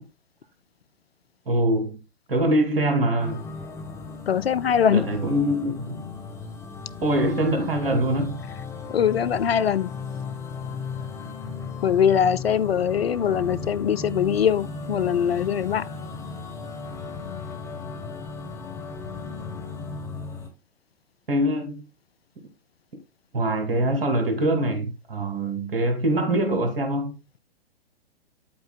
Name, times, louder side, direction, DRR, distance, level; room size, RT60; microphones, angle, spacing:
voice 1, 1.5-2.0 2.3-3.5 4.9-6.1 7.0-8.4 21.3-21.8 23.3-27.1, right 1 dB, 65° right, 2.5 m, -24 dB
sound 1, 3.2-20.5, left 4 dB, 10° left, 1.4 m, -36 dB
voice 2, 4.3-5.0 8.9-9.9 11.8-15.9, left 8 dB, 75° left, 0.5 m, -22 dB
8.8 x 8.5 x 2.2 m
figure-of-eight pair, 115°, 31 cm